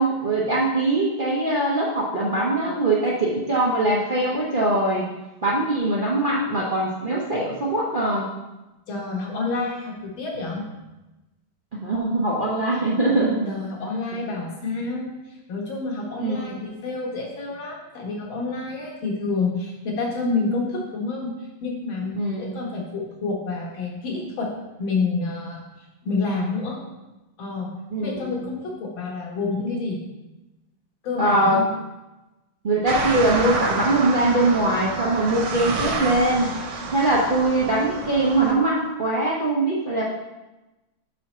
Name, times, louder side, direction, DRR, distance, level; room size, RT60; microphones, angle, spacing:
voice 1, 0.0-5.1 5.4-8.3 11.7-13.5 16.2-16.6 22.1-22.5 27.9-28.3 31.2-31.6 32.6-36.6 36.9-40.0, right 2 dB, 80° right, -5 dB, 0.4 m, -22 dB
voice 2, 8.9-10.6 13.5-21.3 21.6-24.5 24.8-25.6 26.0-26.8 27.4-27.7 28.0-30.0 31.0-31.7, left 3 dB, 75° left, -1 dB, 2.1 m, -28 dB
sound 1, 32.9-38.5, right 3 dB, 65° right, 1.5 m, -29 dB
6.0 x 4.7 x 4.2 m, 1.0 s
omnidirectional pair, 2.2 m